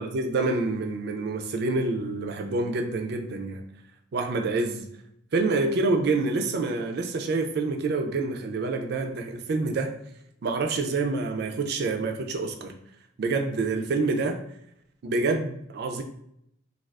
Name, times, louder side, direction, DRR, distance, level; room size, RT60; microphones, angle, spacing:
voice 1, 0.0-3.6 4.1-4.9 5.3-9.9 10.4-12.8 13.2-14.4 15.0-16.0, right 3 dB, 55° right, 4 dB, 0.4 m, -27 dB
2.4 x 2.3 x 3.3 m, 0.75 s
head